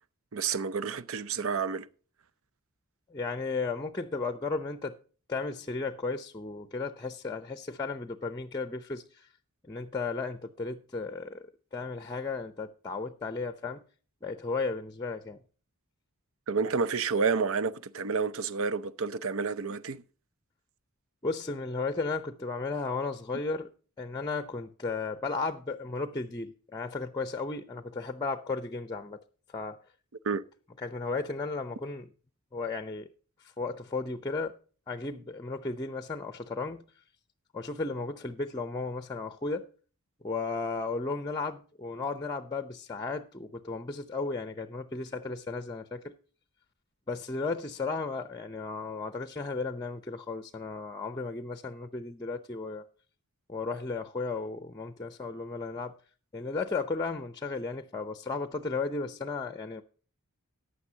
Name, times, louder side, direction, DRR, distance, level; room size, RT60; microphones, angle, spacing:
voice 1, 0.3-1.9 16.5-20.0 30.2-30.4, right 5 dB, 65° right, 0.6 m, -30 dB
voice 2, 3.1-5.0 5.3-9.3 9.6-13.8 14.2-15.4 21.2-23.7 24.0-29.2 29.5-29.8 30.8-32.1 32.5-33.1 33.4-34.6 34.9-36.8 37.5-39.7 40.2-46.1 47.1-52.8 53.5-55.9 56.3-59.8, left 3 dB, 20° left, 0.6 m, -34 dB
14.5 x 9.7 x 2.8 m
head